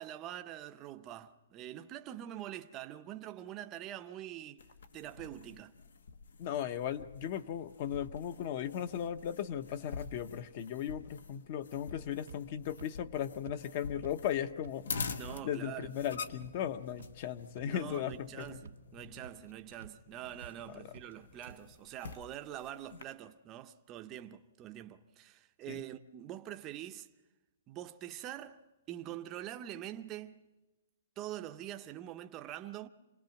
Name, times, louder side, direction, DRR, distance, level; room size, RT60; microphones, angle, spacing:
voice 1, 0.0-4.6 4.9-5.7 15.2-15.9 17.6-27.1 27.7-30.5 31.2-32.9, right 12 dB, 20° right, 0.6 m, -45 dB
sound 1, 4.6-23.0, left 5 dB, 85° left, 1.1 m, -47 dB
voice 2, 6.4-15.1 15.4-18.6 20.8-20.9 25.7-25.8, left 9 dB, 35° left, 0.8 m, -37 dB
sound 2, 12.3-12.4 12.8-12.9 13.4-13.6 14.0-14.1 14.6-14.7 15.2-15.3 15.8-15.9 16.4-16.5 17.0-17.1 17.6-17.7 18.1-18.3 18.6-18.7 19.2-19.3 19.8-19.9 20.4-20.5 20.9-21.0 21.5-21.6, right 6 dB, 75° right, 0.6 m, -50 dB
sound 3, 15.5-21.8, left 3 dB, 55° left, 3.2 m, -61 dB
27.0 x 19.0 x 5.9 m
hypercardioid pair, 165°, 0 cm